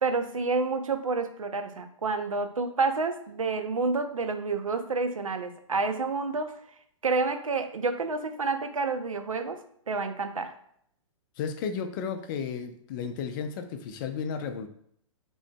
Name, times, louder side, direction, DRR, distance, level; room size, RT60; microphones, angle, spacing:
voice 1, 0.0-6.6 7.0-9.6 9.9-10.5, right 4 dB, 85° right, 8 dB, 0.6 m, -29 dB
voice 2, 11.4-14.7, left 6 dB, 40° left, 7 dB, 0.6 m, -33 dB
6.1 x 3.1 x 2.3 m, 0.67 s
hypercardioid pair, 120°, 17 cm